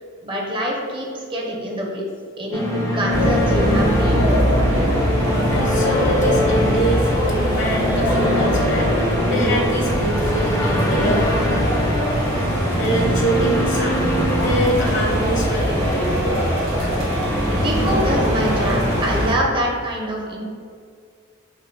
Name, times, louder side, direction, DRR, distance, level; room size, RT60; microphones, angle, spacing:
voice 1, 0.2-2.0 2.4-4.4 17.5-20.5, equal, 25° right, -1 dB, 0.6 m, -25 dB
sound 1, 2.5-16.6, left 1 dB, 20° left, 0.5 m, -25 dB
sound 2, 3.1-19.3, equal, 85° right, 1.3 m, -21 dB
voice 2, 5.5-11.8 12.7-14.0 14.3-16.3, right 1 dB, 65° left, -3 dB, 1.1 m, -25 dB
5.4 x 2.0 x 3.8 m, 2.1 s
head